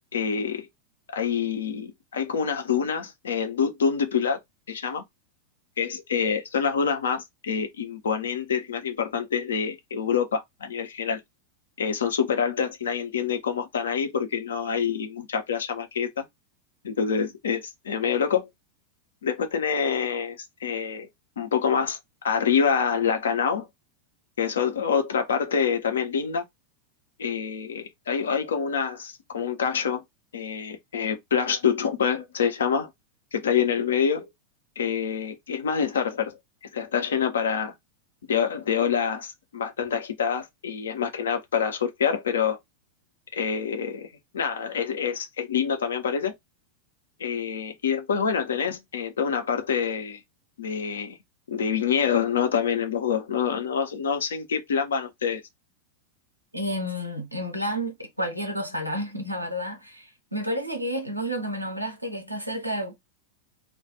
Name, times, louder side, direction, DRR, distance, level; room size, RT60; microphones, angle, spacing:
voice 1, 0.1-0.7 1.1-4.4 4.7-5.0 5.8-11.2 11.8-16.2 16.8-18.5 19.2-21.1 21.4-22.0 22.2-23.7 24.4-26.4 27.2-30.0 30.3-32.9 33.3-34.3 34.8-36.3 36.7-37.7 38.3-42.6 43.3-46.3 47.2-50.2 50.6-51.2 51.5-55.4, left 7 dB, 65° left, 0.6 m, -26 dB
voice 2, 56.5-62.9, equal, 85° right, 0.7 m, -30 dB
2.2 x 2.2 x 2.7 m
figure-of-eight pair, 90°, 0 cm